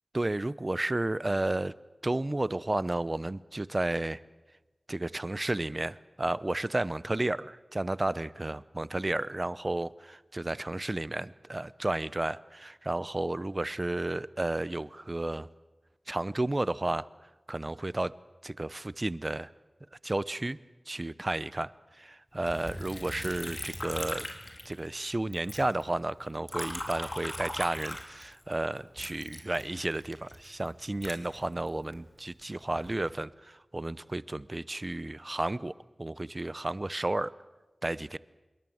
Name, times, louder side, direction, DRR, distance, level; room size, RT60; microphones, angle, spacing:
voice 1, 0.1-1.7 2.0-4.2 4.9-15.5 16.1-17.0 17.5-18.1 18.4-19.5 20.0-20.6 20.9-21.7 22.0-24.3 24.6-37.3 37.8-38.2, right 2 dB, 35° right, 17 dB, 0.7 m, -32 dB
Liquid, 22.5-25.1 25.3-28.5 29.0-32.0 32.6-33.1, left 1 dB, 30° left, 3.9 m, -40 dB
26.0 x 22.5 x 7.9 m, 1.1 s
wide cardioid pair, 60°, 0 cm